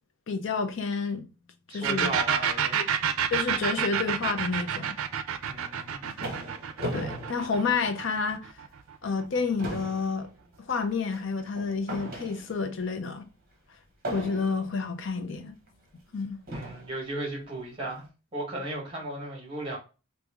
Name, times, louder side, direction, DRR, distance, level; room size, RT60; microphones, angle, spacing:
voice 1, 0.3-1.3 1.7-2.1 2.7-2.8 3.3-5.0 6.0-6.1 6.9-8.5 9.0-10.3 10.7-13.2 14.1-15.5 16.1-16.4, left 4 dB, 60° left, 0.5 m, -29 dB
voice 2, 1.7-2.8 5.4-6.0 16.5-18.0 18.3-19.8, right 2 dB, 25° right, 1.3 m, -35 dB
sound 1, 1.8-9.3, right 8 dB, 85° right, 0.4 m, -29 dB
sound 2, 5.7-8.3 8.8-8.9 9.3-12.8 14.0-14.8 15.7-15.8 16.5-17.0, right 1 dB, 45° right, 0.9 m, -38 dB
2.9 x 2.6 x 3.5 m
head